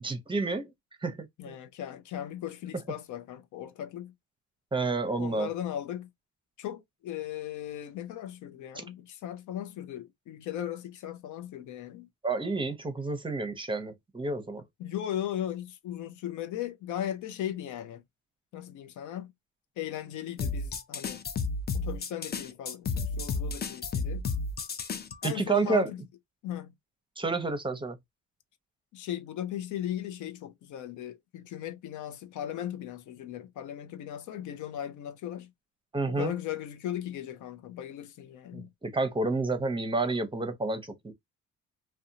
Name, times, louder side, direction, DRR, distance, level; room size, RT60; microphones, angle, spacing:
voice 1, 0.0-0.7 1.0-1.6 4.7-5.5 12.2-14.6 25.2-25.9 27.2-28.0 35.9-36.3 38.5-41.1, right 3 dB, 15° right, 0.7 m, -30 dB
voice 2, 1.4-4.1 5.2-6.1 6.6-12.1 14.8-18.0 18.5-19.3 19.8-21.2 21.7-24.3 25.2-26.0 26.4-26.7 28.9-35.5 36.1-38.7, left 11 dB, 80° left, 0.5 m, -37 dB
sound 1, 20.4-25.3, left 4 dB, 35° left, 0.5 m, -32 dB
2.5 x 2.2 x 2.7 m
cardioid pair, 90°, 30 cm